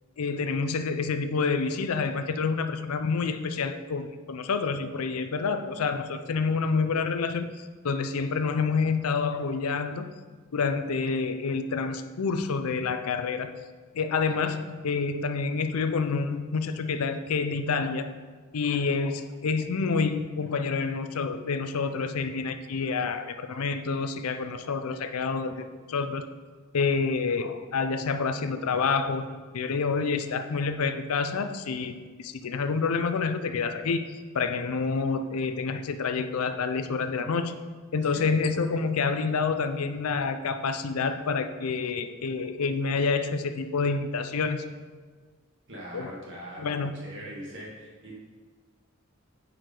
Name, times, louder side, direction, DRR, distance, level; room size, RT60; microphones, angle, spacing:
voice 1, 0.2-10.1 10.5-13.5 13.9-18.1 18.5-26.2 26.7-29.2 29.5-31.9 32.2-34.0 34.3-37.6 37.9-44.6 45.9-46.1 46.6-46.9, left 4 dB, 85° left, 9 dB, 0.5 m, -28 dB
voice 2, 45.7-48.1, equal, 60° right, -4 dB, 2.0 m, -42 dB
9.3 x 4.7 x 3.8 m, 1.5 s
head